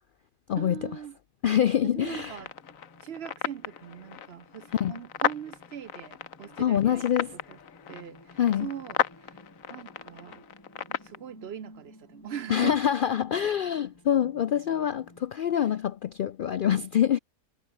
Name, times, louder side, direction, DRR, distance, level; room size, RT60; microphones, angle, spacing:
voice 1, 0.5-1.2 1.8-2.5 3.0-7.1 7.5-7.6 7.9-9.4 9.7-10.5 10.7-12.8 15.5-15.7, right 9 dB, 60° right, 0.9 m, -41 dB
voice 2, 1.4-2.4 4.8-4.9 6.6-7.4 8.4-8.7 12.5-17.2, left 9 dB, 65° left, 0.5 m, -25 dB
sound 1, 1.6-15.3, left 1 dB, 15° left, 6.0 m, -56 dB
sound 2, 2.1-11.2, left 8 dB, 85° left, 1.5 m, -35 dB
omnidirectional pair, 1.4 m